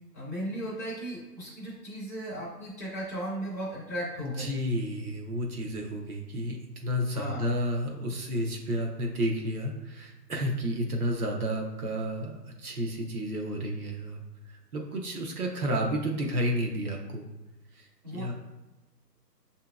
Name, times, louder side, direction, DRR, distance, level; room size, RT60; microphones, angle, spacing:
voice 1, 0.1-4.5 7.1-7.5 18.0-18.3, equal, 10° left, -11 dB, 0.5 m, -36 dB
voice 2, 4.2-14.2 14.5-17.3 17.7-18.3, equal, 60° right, 0 dB, 0.8 m, -31 dB
6.3 x 2.8 x 2.3 m, 1.1 s
hypercardioid pair, 155°, 50 cm